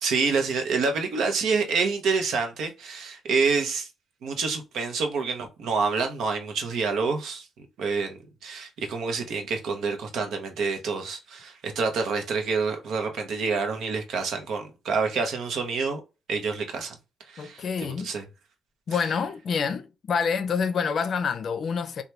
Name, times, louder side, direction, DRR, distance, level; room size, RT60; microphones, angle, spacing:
voice 1, 0.0-3.9 4.2-16.0 16.3-17.0 17.3-18.2 18.9-19.0, right 4 dB, 75° right, 0.7 m, -27 dB
voice 2, 17.4-18.1 18.9-22.0, left 6 dB, 55° left, 0.5 m, -27 dB
2.8 x 2.2 x 3.3 m
cardioid pair, 90°, 0 cm